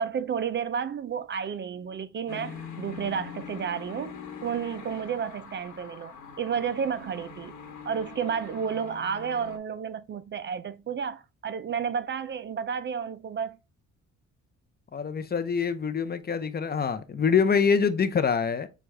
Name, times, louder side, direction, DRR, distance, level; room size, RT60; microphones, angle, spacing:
voice 1, 0.0-7.5 7.8-13.6, right 7 dB, 40° right, 0.4 m, -31 dB
sound 1, 2.3-9.6, left 6 dB, 75° left, 1.2 m, -43 dB
voice 2, 14.9-18.7, left 6 dB, 30° left, 0.6 m, -25 dB
6.2 x 2.3 x 3.2 m
cardioid pair, 90°, 30 cm